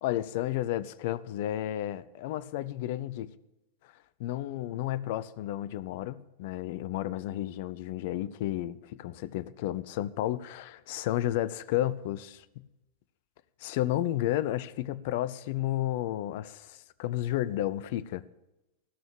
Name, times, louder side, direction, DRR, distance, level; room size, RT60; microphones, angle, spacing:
voice 1, 0.0-3.3 4.2-12.6 13.6-18.2, left 13 dB, 50° left, 0.6 m, -32 dB
15.5 x 6.4 x 8.5 m
figure-of-eight pair, 90°, 0 cm